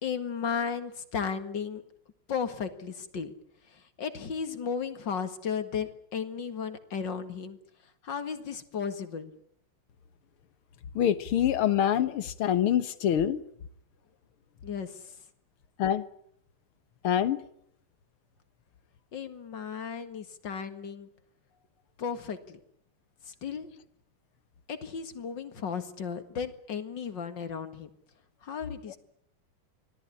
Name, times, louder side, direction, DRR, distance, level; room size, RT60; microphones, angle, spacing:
voice 1, 0.0-1.8 2.3-3.3 3.7-7.6 8.0-9.3 14.6-15.1 19.1-21.1 22.0-22.6 23.3-23.7 24.7-27.9 28.4-29.0, left 6 dB, 60° left, 9 dB, 2.5 m, -35 dB
voice 2, 11.0-13.4 15.8-16.1 17.0-17.4, left 10 dB, 90° left, 13 dB, 2.1 m, -25 dB
25.5 x 17.5 x 9.8 m, 0.71 s
omnidirectional pair, 2.3 m